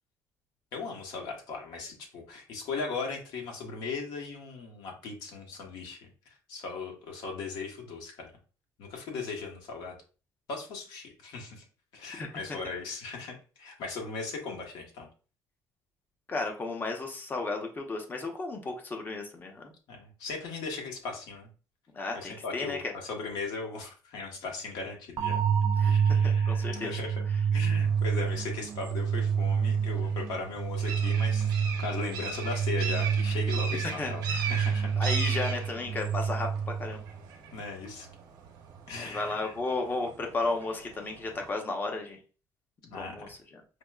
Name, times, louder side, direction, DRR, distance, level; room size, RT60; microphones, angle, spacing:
voice 1, 0.7-6.0 6.3-8.3 8.8-10.0 10.5-11.6 11.9-15.1 19.9-21.5 22.1-25.4 25.8-27.2 27.5-31.5 31.8-34.9 37.5-38.1 38.9-39.5 42.8-43.1, left 4 dB, 75° left, 1 dB, 1.2 m, -38 dB
voice 2, 12.2-12.6 16.3-19.7 21.9-22.9 25.8-26.9 34.0-34.5 35.0-37.0 39.0-42.2 42.9-43.6, left 3 dB, 25° left, 3 dB, 0.8 m, -34 dB
sound 1, 25.2-37.1, right 7 dB, 45° right, 0.4 m, -28 dB
sound 2, 27.7-41.5, right 5 dB, 75° right, 0.9 m, -41 dB
5.1 x 2.1 x 2.3 m, 0.36 s
cardioid pair, 135°, 7 cm